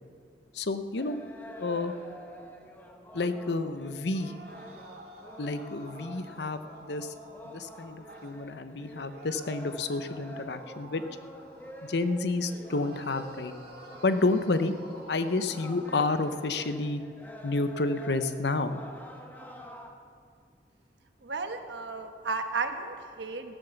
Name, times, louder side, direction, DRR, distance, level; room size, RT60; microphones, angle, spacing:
voice 1, 0.5-1.2 1.6-1.9 3.1-4.3 5.4-7.1 7.4-11.0 11.8-13.5 14.0-14.7 15.1-17.0 17.4-18.8, left 3 dB, 75° left, 10 dB, 0.8 m, -30 dB
sound 1, 1.0-19.9, equal, 10° left, 1.1 m, -47 dB
sound 2, 4.0-8.4 9.1-12.3 12.6-16.6, right 1 dB, 60° right, 2.7 m, -51 dB
voice 2, 21.2-23.5, right 4 dB, 80° right, 6 dB, 1.2 m, -34 dB
15.5 x 10.5 x 7.0 m, 2.3 s
head